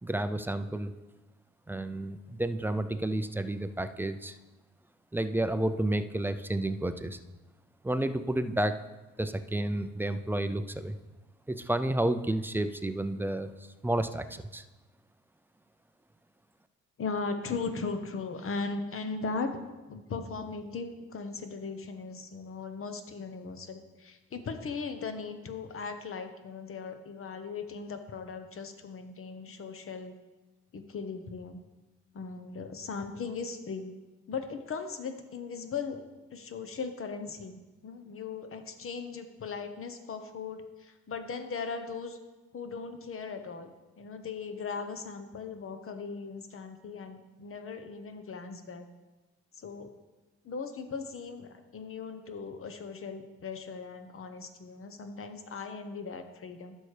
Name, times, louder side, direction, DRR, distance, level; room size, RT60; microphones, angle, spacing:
voice 1, 0.0-0.9 1.7-4.4 5.1-7.2 7.8-8.8 9.2-11.0 11.5-13.5 13.8-14.6, right 1 dB, 5° right, 10 dB, 0.4 m, -31 dB
voice 2, 17.0-30.1 30.7-31.6 32.1-33.9 34.3-36.0 36.3-42.2 42.5-43.7 44.0-48.9 49.6-49.9 50.4-56.8, left 4 dB, 45° left, 8 dB, 0.9 m, -38 dB
11.5 x 6.5 x 3.3 m, 1.1 s
cardioid pair, 90°, 30 cm